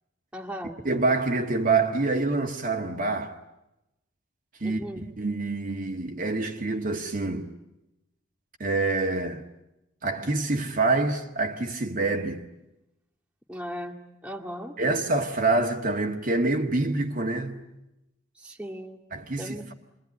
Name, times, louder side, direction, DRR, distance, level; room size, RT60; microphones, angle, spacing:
voice 1, 0.3-0.8 4.6-5.1 13.5-14.0 14.2-14.8 18.4-19.0 19.4-19.7, equal, 5° right, 2.1 m, -37 dB
voice 2, 0.8-3.4 4.6-7.5 8.6-9.4 10.0-12.4 14.8-17.6 19.1-19.7, right 3 dB, 45° right, 1.5 m, -26 dB
27.5 x 22.0 x 9.7 m
head